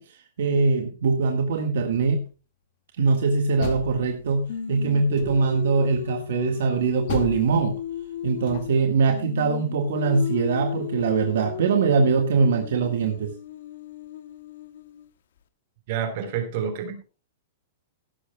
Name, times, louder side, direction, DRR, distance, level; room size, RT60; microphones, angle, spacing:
voice 1, 0.0-2.2 3.0-7.8 8.2-13.3, right 4 dB, 70° right, 5 dB, 1.7 m, -22 dB
Door, 3.3-4.6 5.1-5.7 7.1-9.0, left 8 dB, 45° left, 1.9 m, -36 dB
Singing, 4.5-8.8 9.1-15.1, left 10 dB, 70° left, 1.5 m, -35 dB
voice 2, 15.9-17.0, right 8 dB, 45° right, 8 dB, 3.8 m, -28 dB
16.0 x 12.5 x 2.3 m, 0.32 s
hypercardioid pair, 165°, 0 cm